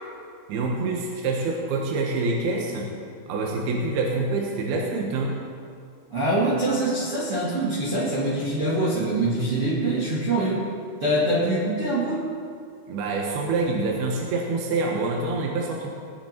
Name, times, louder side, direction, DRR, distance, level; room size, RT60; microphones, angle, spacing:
voice 1, 0.5-2.9 3.3-5.4 12.9-15.9, right 3 dB, 70° right, -1 dB, 2.5 m, -26 dB
voice 2, 6.1-10.7 11.0-12.3, right 1 dB, 55° right, -7 dB, 1.7 m, -24 dB
19.0 x 9.5 x 4.5 m, 2.3 s
omnidirectional pair, 5.7 m